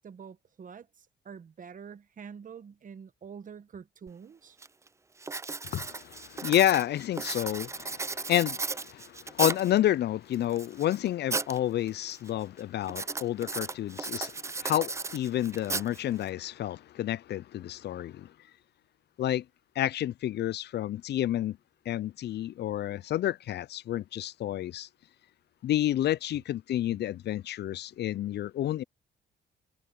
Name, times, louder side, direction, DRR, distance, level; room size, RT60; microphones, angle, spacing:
voice 1, 0.0-4.6, right 6 dB, 40° right, 1.2 m, -46 dB
Writing, 4.1-4.2 4.6-4.9 5.2-9.8 10.3-11.6 11.9-12.3 12.9-16.3, right 3 dB, 15° right, 0.4 m, -35 dB
voice 2, 5.6-18.3 19.2-19.4 19.8-21.6 21.9-24.9 25.6-28.8, left 12 dB, 60° left, 0.4 m, -30 dB
cardioid pair, 90°, 20 cm